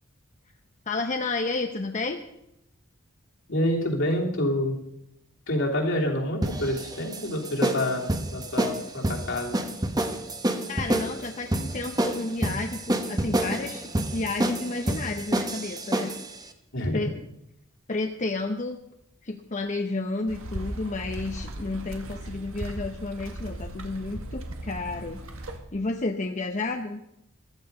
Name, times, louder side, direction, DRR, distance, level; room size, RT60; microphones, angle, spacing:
voice 1, 0.9-2.2 10.7-16.1 16.9-17.1 17.9-18.8 19.2-25.2 25.7-27.0, left 3 dB, 35° left, 5 dB, 0.8 m, -31 dB
voice 2, 3.5-4.8 5.5-9.6 16.7-17.0, left 1 dB, 65° left, 0 dB, 3.0 m, -27 dB
sound 1, 6.4-16.3, right 1 dB, 20° right, 1.1 m, -28 dB
sound 2, 20.3-25.6, right 1 dB, 85° right, 1.8 m, -37 dB
14.5 x 12.5 x 5.4 m, 0.83 s
head